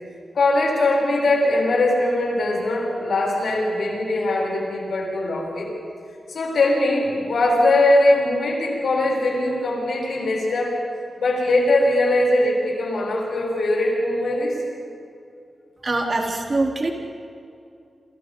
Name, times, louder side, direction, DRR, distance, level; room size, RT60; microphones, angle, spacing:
voice 1, 0.3-5.7 6.3-10.7 11.2-14.6, left 2 dB, 80° left, -3 dB, 7.3 m, -21 dB
voice 2, 15.8-16.9, right 2 dB, 45° right, 0 dB, 3.6 m, -23 dB
29.5 x 27.5 x 3.9 m, 2.5 s
cardioid pair, 75°, 0 cm